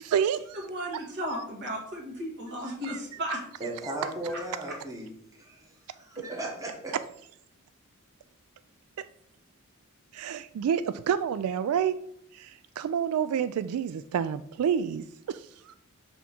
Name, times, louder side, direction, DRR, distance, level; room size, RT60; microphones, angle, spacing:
voice 1, 0.0-0.7 2.8-3.0 3.8-3.9 10.1-12.0 12.3-15.7, right 8 dB, 90° right, 14 dB, 0.3 m, -29 dB
voice 2, 0.7-3.4 4.3-4.4, equal, 55° right, 0 dB, 1.8 m, -34 dB
voice 3, 3.6-5.1 5.4-6.9, right 2 dB, 15° right, -1 dB, 1.4 m, -36 dB
6.0 x 3.6 x 5.8 m, 0.70 s
head